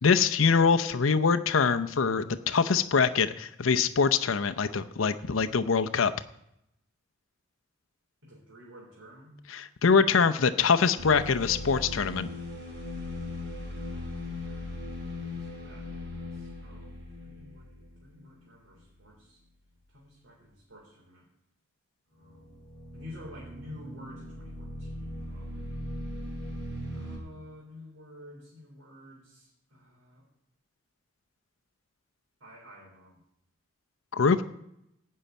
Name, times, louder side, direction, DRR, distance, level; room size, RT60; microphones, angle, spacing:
voice 1, 0.0-6.1 9.5-12.3 34.1-34.4, left 5 dB, 90° left, 9 dB, 0.6 m, -24 dB
voice 2, 8.2-9.4 13.7-14.9 15.2-17.7 18.0-19.4 19.9-21.3 22.1-22.6 22.9-25.8 26.9-30.2 32.4-33.2, left 1 dB, 80° right, -5 dB, 3.6 m, -50 dB
sound 1, 11.0-18.3 18.9-19.1 22.2-27.2, left 1 dB, 60° right, 4.8 m, -39 dB
15.5 x 5.6 x 9.1 m, 0.82 s
head